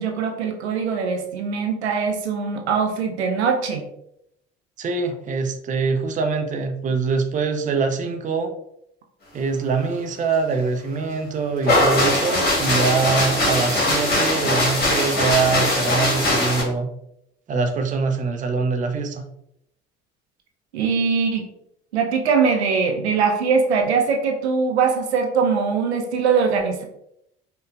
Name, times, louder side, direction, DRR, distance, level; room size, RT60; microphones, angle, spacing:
voice 1, 0.0-3.8 20.7-21.5 21.9-26.8, right 5 dB, 80° right, 3 dB, 0.5 m, -21 dB
voice 2, 4.8-8.5 9.3-16.9 17.5-19.2, right 4 dB, 25° right, 5 dB, 0.5 m, -24 dB
sound 1, 11.6-16.6, left 1 dB, 30° left, 1.5 m, -20 dB
5.0 x 2.2 x 2.4 m, 0.77 s
figure-of-eight pair, 50°, 32 cm